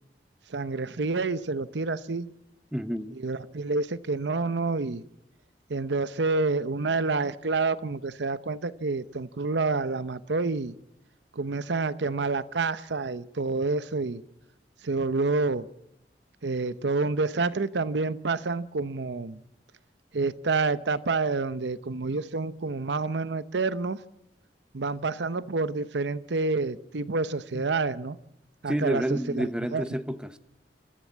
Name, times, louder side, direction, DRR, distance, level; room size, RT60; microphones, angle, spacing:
voice 1, 0.5-2.3 3.2-5.0 5.7-10.7 11.3-14.2 14.8-15.7 16.4-19.4 20.1-24.0 24.7-28.2 28.6-29.8, right 3 dB, 75° right, 0.8 m, -28 dB
voice 2, 2.7-3.2 27.5-27.7 28.7-30.4, equal, 5° right, 0.8 m, -30 dB
27.5 x 14.5 x 8.4 m
head